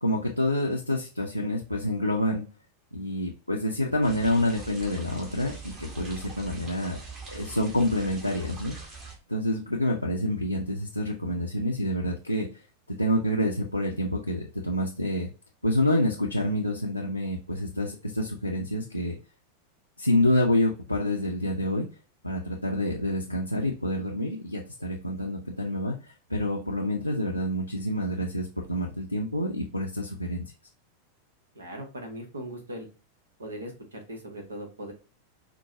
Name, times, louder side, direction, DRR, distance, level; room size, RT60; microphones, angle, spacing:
voice 1, 0.0-2.4 2.9-7.0 7.3-8.8 9.3-12.5 12.9-15.3 15.6-19.1 20.0-21.9 22.2-30.5, left 1 dB, 85° left, -2 dB, 0.5 m, -27 dB
sound 1, 4.0-9.2, right 4 dB, 25° right, 1.3 m, -43 dB
voice 2, 31.5-32.9 33.4-34.9, right 1 dB, 75° right, 3 dB, 1.0 m, -39 dB
4.6 x 2.2 x 2.7 m, 0.34 s
figure-of-eight pair, 90°, 0 cm